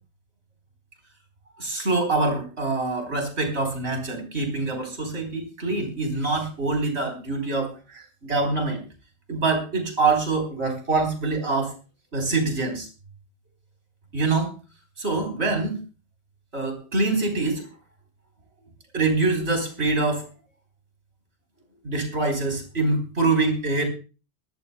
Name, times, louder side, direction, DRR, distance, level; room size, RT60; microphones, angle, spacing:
voice 1, 1.6-8.8 9.3-11.7 12.1-12.9 14.1-14.5 15.0-15.8 16.5-17.6 18.9-20.3 21.8-23.8, right 3 dB, 70° right, 3 dB, 4.1 m, -25 dB
22.5 x 14.0 x 2.2 m, 0.33 s
omnidirectional pair, 1.1 m